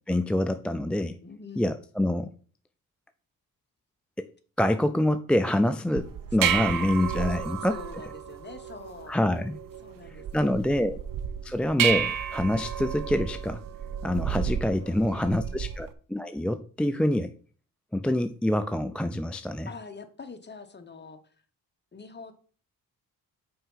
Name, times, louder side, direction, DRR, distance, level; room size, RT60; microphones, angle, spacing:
voice 1, 0.1-1.2 1.6-2.3 4.2-4.3 4.6-7.7 9.1-9.6 10.3-11.0 11.4-13.6 14.0-17.3 17.9-19.7, left 1 dB, 5° left, 9 dB, 0.3 m, -26 dB
voice 2, 1.2-1.8 6.4-9.1 9.8-10.8 14.7-15.6 19.7-21.3 21.9-22.3, left 4 dB, 30° left, 7 dB, 1.2 m, -45 dB
sound 1, 6.0-15.9, right 8 dB, 60° right, 0.7 m, -32 dB
5.6 x 4.6 x 5.6 m, 0.43 s
cardioid pair, 65°, 38 cm